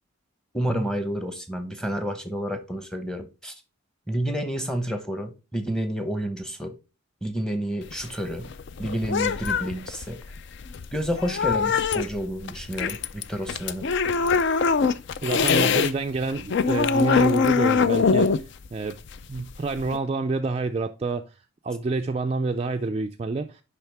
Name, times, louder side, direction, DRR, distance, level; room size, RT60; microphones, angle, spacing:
voice 1, 0.5-3.5 4.1-6.7 7.2-8.5 8.8-10.2 10.9-13.9, equal, 5° left, 0.8 m, -30 dB
sound 1, 7.8-15.9 16.2-20.0, left 5 dB, 55° left, 0.4 m, -23 dB
voice 2, 15.2-18.3 18.7-19.0 19.3-21.2 21.6-23.6, right 3 dB, 30° right, 0.3 m, -27 dB
10.0 x 3.5 x 3.4 m
head